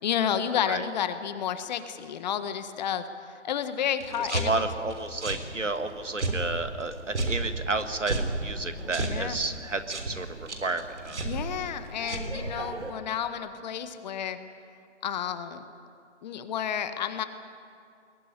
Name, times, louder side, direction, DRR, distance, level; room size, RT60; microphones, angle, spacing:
voice 1, 0.0-3.0 3.4-4.7 9.0-9.4 11.2-14.4 15.0-15.6 16.2-17.2, left 9 dB, 35° left, 10 dB, 1.5 m, -31 dB
sound 1, 4.0-12.9, right 2 dB, 70° right, 3.9 m, -34 dB
voice 2, 4.2-11.2, right 3 dB, 85° right, 9 dB, 1.9 m, -31 dB
21.5 x 19.5 x 9.7 m, 2.4 s
figure-of-eight pair, 135°, 36 cm